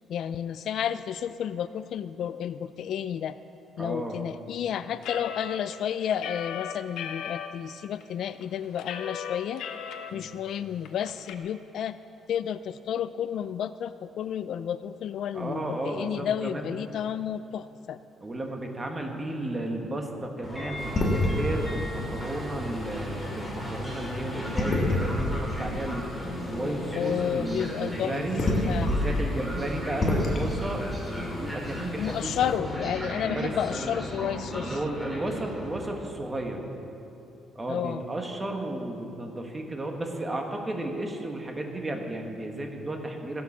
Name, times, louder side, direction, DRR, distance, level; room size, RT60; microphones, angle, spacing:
voice 1, 0.1-3.4 3.8-9.6 10.1-12.0 12.3-18.0 26.9-28.2 28.7-28.9 32.0-34.8 37.7-38.0, left 9 dB, 55° left, 13 dB, 0.3 m, -31 dB
voice 2, 3.8-4.2 10.1-10.4 15.3-16.8 18.2-26.0 26.5-28.5 28.8-33.5 34.6-36.6 37.5-43.4, right 1 dB, 15° right, 2 dB, 1.4 m, -33 dB
sound 1, 5.0-7.5 8.0-8.1 8.4-10.1 10.4-10.5 10.8-11.3, left 8 dB, 75° left, 0.9 m, -37 dB
Train, 20.4-35.9, left 1 dB, ahead, 2.7 m, -36 dB
sound 2, 20.8-32.6, left 1 dB, 25° left, 1.8 m, -31 dB
15.0 x 11.0 x 7.2 m, 2.9 s
cardioid pair, 175°, 0 cm